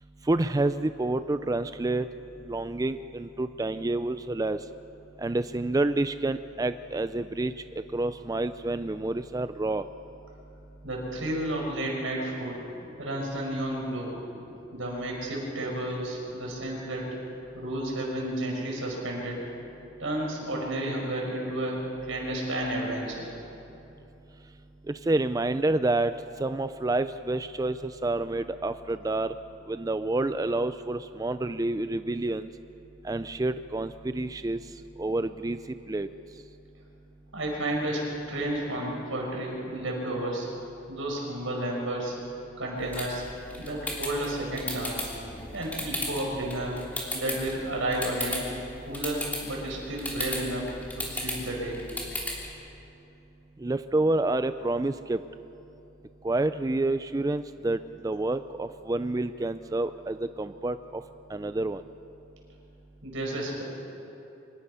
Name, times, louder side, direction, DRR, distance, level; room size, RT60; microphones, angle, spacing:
voice 1, 0.3-2.1 2.5-4.6 5.2-7.5 7.9-9.8 24.9-26.1 26.4-29.3 29.7-32.5 33.0-34.6 35.0-35.6 35.9-36.1 53.6-55.2 56.2-57.8 58.0-61.0 61.3-61.8, right 2 dB, 20° right, 11 dB, 0.4 m, -28 dB
voice 2, 10.8-12.6 13.0-14.1 14.7-17.1 17.5-19.5 20.0-23.3 37.3-40.5 40.9-42.2 42.6-43.2 43.6-45.1 45.5-46.8 47.1-48.5 48.9-51.8 63.0-63.6, right 1 dB, 90° right, -1 dB, 5.9 m, -32 dB
sound 1, 42.8-52.5, left 1 dB, 10° left, 3.1 m, -36 dB
25.0 x 20.0 x 5.6 m, 2.9 s
head